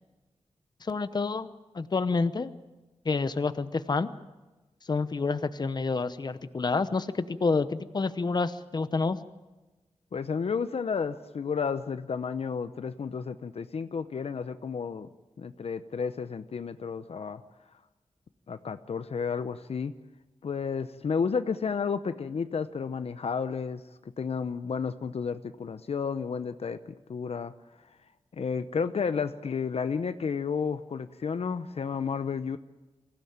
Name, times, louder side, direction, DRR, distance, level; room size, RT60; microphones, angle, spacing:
voice 1, 0.8-1.5 1.7-2.5 3.0-4.1 4.9-9.2, left 4 dB, 40° left, 12 dB, 0.9 m, -28 dB
voice 2, 10.1-15.1 15.4-17.4 18.5-19.9 20.4-23.8 24.2-26.8 27.1-27.5 28.3-32.6, left 6 dB, 65° left, 11 dB, 0.8 m, -32 dB
24.0 x 16.0 x 8.7 m, 1.1 s
wide cardioid pair, 140°, 11 cm